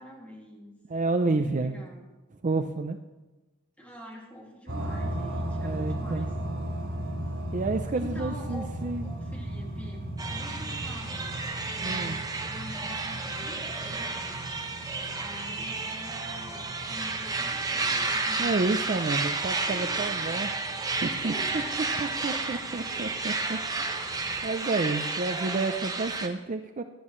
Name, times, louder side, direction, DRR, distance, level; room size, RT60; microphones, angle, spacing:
voice 1, 0.0-0.8 1.3-2.0 3.8-6.3 7.9-14.4 15.2-18.8 19.6-20.4 21.2-22.4, equal, 5° left, -2 dB, 2.5 m, -45 dB
voice 2, 0.9-1.8 2.4-3.0 5.6-6.3 7.5-9.1 11.8-12.2 18.4-20.5 20.8-21.3 22.0-24.2 24.4-26.8, right 3 dB, 35° right, 7 dB, 0.5 m, -30 dB
sound 1, 4.7-24.5, right 1 dB, 75° right, 3.6 m, -38 dB
sound 2, 10.2-26.3, right 3 dB, 20° right, 0.9 m, -32 dB
18.5 x 11.5 x 3.2 m, 1.1 s
head